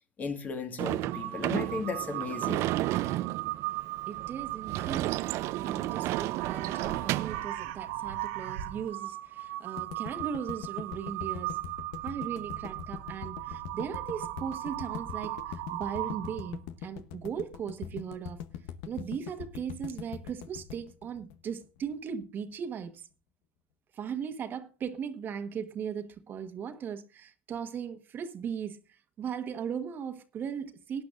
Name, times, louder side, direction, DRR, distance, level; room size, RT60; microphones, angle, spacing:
voice 1, 0.2-2.7, left 4 dB, 30° left, 1.7 m, -35 dB
Sliding door / Slam, 0.8-7.4, right 16 dB, 55° right, 0.5 m, -32 dB
Crow, 1.1-16.6, right 16 dB, 75° right, 1.0 m, -38 dB
voice 2, 4.1-11.6 12.0-18.4 18.8-23.1 23.9-31.0, right 7 dB, 35° right, 1.3 m, -38 dB
sound 1, 9.8-21.9, left 9 dB, 70° left, 0.9 m, -42 dB
18.0 x 10.5 x 2.5 m
supercardioid pair, 115°, 6 cm